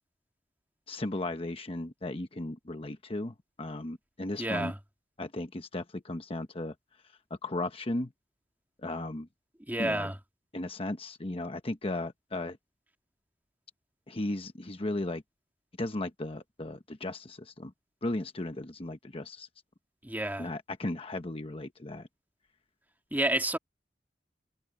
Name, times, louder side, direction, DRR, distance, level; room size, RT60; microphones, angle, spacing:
voice 1, 0.9-4.7 5.2-6.7 7.3-8.1 8.8-9.3 9.8-10.1 10.5-12.6 14.1-15.2 15.8-17.7 18.0-19.5 20.4-22.1, left 2 dB, 35° left, 1.0 m, -36 dB
voice 2, 4.4-4.8 9.7-10.2 20.0-20.5 23.1-23.6, right 1 dB, 10° right, 2.2 m, -30 dB
head